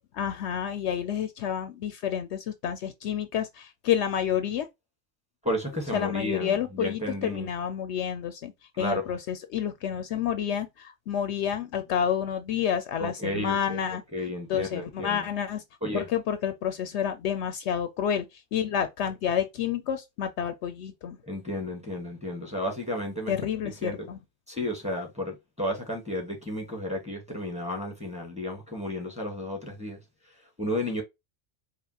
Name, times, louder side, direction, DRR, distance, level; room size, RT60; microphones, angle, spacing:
voice 1, 0.1-4.7 5.9-14.0 14.5-15.6 15.9-18.2 18.5-21.2 23.3-24.2, left 9 dB, 70° left, 0.8 m, -29 dB
voice 2, 5.4-7.5 8.7-9.2 13.0-15.3 15.8-16.1 21.2-23.3 23.8-24.1 24.5-30.0 30.6-31.0, left 1 dB, 5° right, 1.3 m, -32 dB
5.0 x 2.5 x 2.9 m
omnidirectional pair, 1.3 m